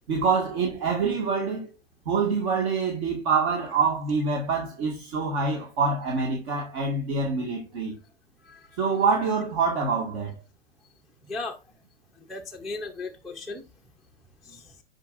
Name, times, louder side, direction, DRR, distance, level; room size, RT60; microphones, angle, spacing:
voice 1, 0.1-1.7 2.1-7.9 8.8-10.3, right 4 dB, 45° right, 1.8 m, -26 dB
voice 2, 11.3-11.6 12.3-13.7 14.4-14.7, left 3 dB, ahead, 0.5 m, -36 dB
10.0 x 4.7 x 2.5 m
hypercardioid pair, 115°, 31 cm